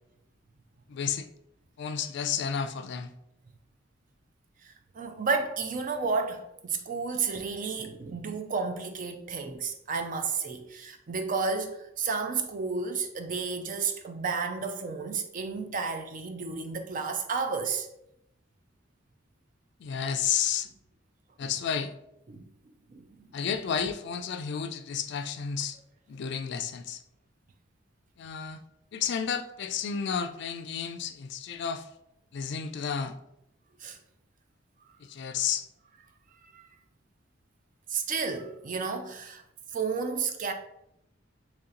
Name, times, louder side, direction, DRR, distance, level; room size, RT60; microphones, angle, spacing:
voice 1, 0.9-1.3 1.8-3.1 19.8-20.7 21.4-21.9 23.3-25.8 26.1-27.0 28.2-28.6 28.9-31.9 32.3-33.1 35.0-35.7, left 7 dB, 60° left, 0.3 m, -31 dB
voice 2, 4.6-17.9 21.4-21.5 22.3-22.5 22.9-23.3 33.8-34.0 36.5-36.6 37.9-39.4 39.7-40.5, right 5 dB, 45° right, 0.4 m, -32 dB
3.1 x 2.8 x 3.7 m
head